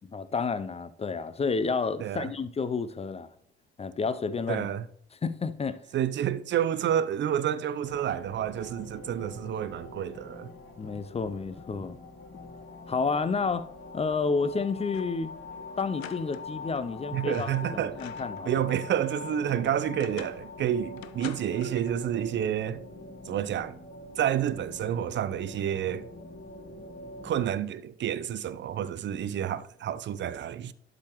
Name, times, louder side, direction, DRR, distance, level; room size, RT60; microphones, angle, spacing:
voice 1, 0.0-3.3 3.8-4.7 5.2-5.8 10.8-12.0 12.9-13.7 13.9-15.3 15.8-18.6, left 4 dB, 20° left, 0.6 m, -30 dB
voice 2, 2.0-2.3 4.5-4.8 5.9-10.5 17.1-18.1 18.4-22.9 23.3-23.8 24.2-26.1 27.2-30.7, right 10 dB, 35° right, 0.6 m, -29 dB
sound 1, 7.8-27.5, left 3 dB, 40° left, 2.5 m, -44 dB
sound 2, 14.9-15.2 15.5-15.6 16.0-16.9 17.2-18.5 18.8-20.5 21.0-22.0, left 12 dB, 70° left, 0.6 m, -47 dB
11.5 x 4.9 x 3.1 m
figure-of-eight pair, 50°, 32 cm